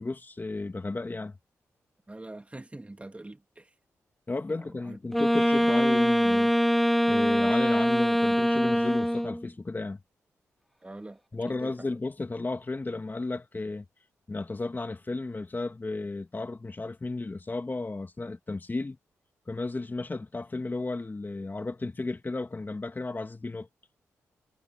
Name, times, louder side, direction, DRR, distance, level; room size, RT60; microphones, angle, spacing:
voice 1, 0.0-1.4 4.3-6.5 7.1-10.0 11.3-13.8 14.3-19.0 19.5-23.7, left 3 dB, 30° left, 2.4 m, -33 dB
voice 2, 2.1-3.7 4.5-5.0 10.8-12.0, right 2 dB, 20° right, 2.6 m, -44 dB
Wind instrument woodwind instrument, 5.1-9.5, equal, ahead, 0.9 m, -23 dB
supercardioid pair, 45°, 6 cm